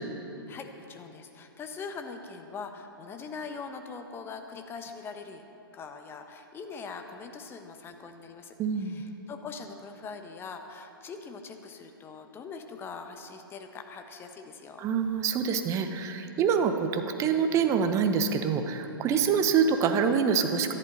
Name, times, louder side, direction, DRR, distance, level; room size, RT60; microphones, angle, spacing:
voice 1, 0.5-5.4 5.7-14.9, left 5 dB, 20° left, 6 dB, 1.1 m, -42 dB
voice 2, 8.6-9.0 14.8-20.7, right 6 dB, 25° right, 7 dB, 1.1 m, -26 dB
23.5 x 11.0 x 4.1 m, 2.9 s
figure-of-eight pair, 110°, 12 cm